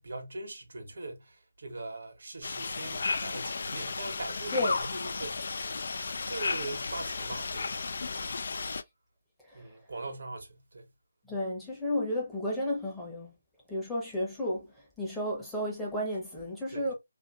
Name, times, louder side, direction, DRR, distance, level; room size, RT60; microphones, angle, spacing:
voice 1, 0.0-5.6 6.2-8.1 9.5-10.9 16.7-16.9, right 2 dB, 70° right, 1.0 m, -41 dB
sound 1, 2.4-8.8, left 4 dB, 60° left, 0.3 m, -34 dB
voice 2, 11.3-13.3 13.7-14.7 15.0-16.9, left 1 dB, 5° left, 0.8 m, -32 dB
2.6 x 2.5 x 2.3 m
figure-of-eight pair, 160°, 0 cm